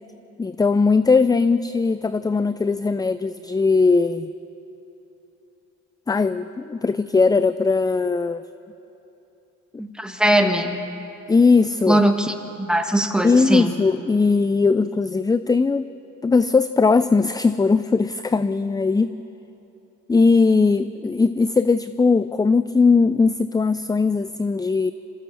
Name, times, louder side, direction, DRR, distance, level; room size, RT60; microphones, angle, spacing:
voice 1, 0.4-4.3 6.1-8.4 11.3-12.0 13.2-15.9 16.2-19.2 20.1-24.9, left 4 dB, 15° left, 13 dB, 0.4 m, -19 dB
voice 2, 9.8-10.8 11.9-13.7, right 1 dB, 5° right, 5 dB, 1.7 m, -20 dB
26.0 x 15.0 x 7.3 m, 3.0 s
cardioid pair, 90°, 30 cm